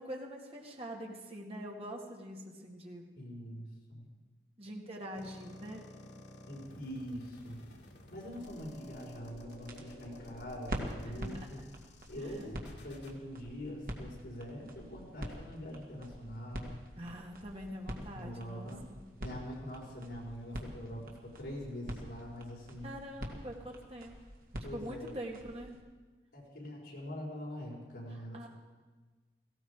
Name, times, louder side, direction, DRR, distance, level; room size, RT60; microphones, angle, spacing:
voice 1, 0.0-3.0 4.6-5.8 11.0-11.5 12.2-12.5 17.0-19.0 22.8-24.1 24.7-25.7 28.3-28.5, equal, 35° right, 0 dB, 2.1 m, -44 dB
voice 2, 3.2-4.1 6.5-7.6 8.1-11.6 12.1-16.8 18.1-18.8 19.2-22.9 24.6-25.1 26.3-28.5, equal, 70° left, -3 dB, 4.7 m, -44 dB
sound 1, 5.2-13.2, left 1 dB, 90° left, 1.9 m, -53 dB
sound 2, 8.3-25.8, equal, 50° right, 2.0 m, -46 dB
18.0 x 16.5 x 4.9 m, 1.3 s
head